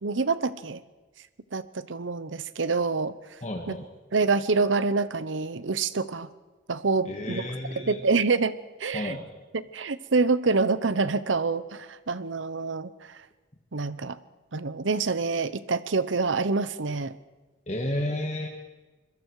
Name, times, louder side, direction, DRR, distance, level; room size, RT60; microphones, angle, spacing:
voice 1, 0.0-0.8 1.5-3.2 3.7-3.8 4.1-6.3 6.7-7.5 7.8-8.5 8.8-9.2 9.5-13.2 13.7-14.2 14.5-17.1, right 4 dB, 85° right, 15 dB, 0.9 m, -26 dB
voice 2, 3.4-3.9 7.1-8.0 8.9-9.3 17.7-18.5, left 1 dB, 35° left, 2 dB, 1.8 m, -31 dB
25.5 x 22.0 x 4.8 m, 1.2 s
head